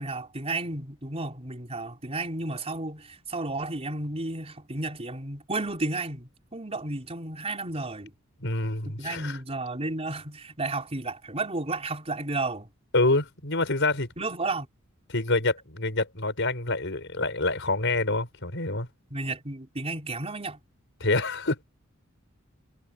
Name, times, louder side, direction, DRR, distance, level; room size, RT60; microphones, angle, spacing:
voice 1, 0.0-8.1 8.8-12.7 14.2-14.7 19.1-20.6, right 2 dB, 30° right, 4.6 m, -32 dB
voice 2, 8.4-9.4 12.9-14.1 15.1-18.9 21.0-21.6, left 2 dB, 60° left, 6.0 m, -26 dB
head